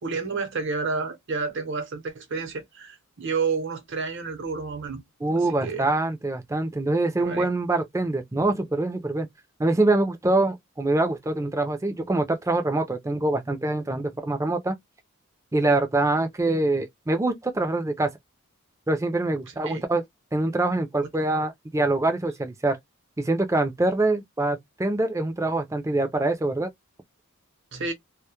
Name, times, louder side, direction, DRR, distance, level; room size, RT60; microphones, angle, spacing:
voice 1, 0.0-5.0 5.5-5.9 7.2-7.5 19.7-19.8 27.7-27.9, right 4 dB, 60° right, 0.8 m, -30 dB
voice 2, 5.2-9.3 9.6-14.8 15.5-18.1 18.9-20.0 20.3-22.8 23.2-26.7, right 2 dB, 15° right, 0.4 m, -24 dB
2.2 x 2.0 x 2.8 m
head